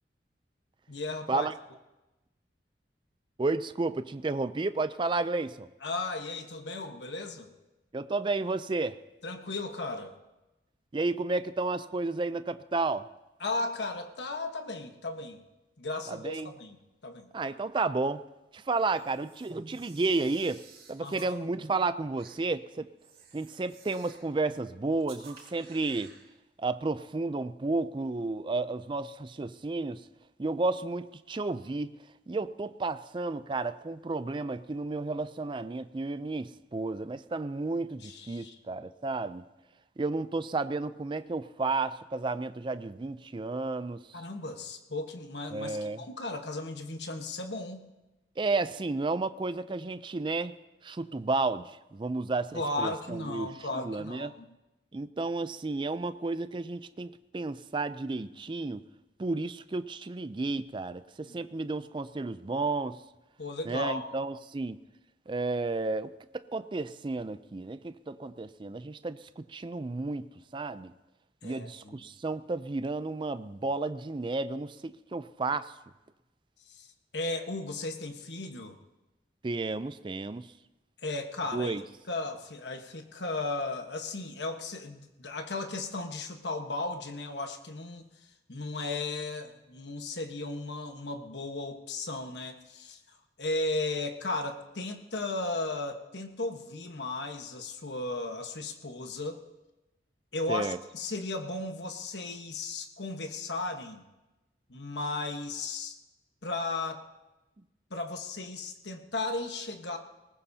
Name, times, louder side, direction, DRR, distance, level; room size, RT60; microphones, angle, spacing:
voice 1, 0.9-1.5 5.8-7.5 9.2-10.2 13.4-15.4 15.8-16.8 17.0-17.3 21.0-21.3 38.0-38.5 44.1-47.8 52.5-54.4 63.4-64.1 71.4-72.0 76.7-76.9 77.1-78.8 81.0-81.8 82.1-88.1 88.5-93.0 93.4-99.4 100.3-104.0 104.7-106.0 106.4-107.0 107.9-110.0, left 2 dB, 80° left, 5 dB, 1.3 m, -35 dB
voice 2, 3.4-5.7 7.9-9.0 10.9-13.1 16.1-16.5 17.3-18.2 18.5-22.9 23.3-26.1 26.6-30.1 30.4-31.9 32.3-39.5 40.0-44.3 45.5-46.0 48.4-50.5 50.8-54.3 54.9-58.8 59.2-63.0 63.6-64.8 65.3-70.3 70.5-70.9 71.4-75.7 79.4-80.5 81.5-81.8 100.5-100.8, right 3 dB, 30° right, 13 dB, 0.4 m, -32 dB
Camera, 18.8-21.3 22.2-22.3 23.0-24.3 25.0-26.2, right 5 dB, 60° right, 4.6 m, -54 dB
20.5 x 19.0 x 2.8 m, 1.0 s
head